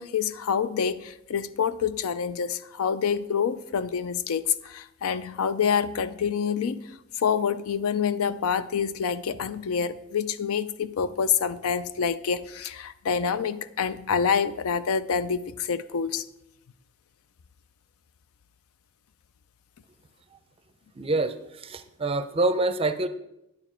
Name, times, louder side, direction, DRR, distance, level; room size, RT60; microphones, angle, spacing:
voice 1, 0.0-6.8 7.2-16.2, left 7 dB, 80° left, 14 dB, 0.4 m, -27 dB
voice 2, 21.0-23.1, right 2 dB, 25° right, 10 dB, 0.5 m, -26 dB
9.7 x 7.1 x 4.4 m, 0.85 s
head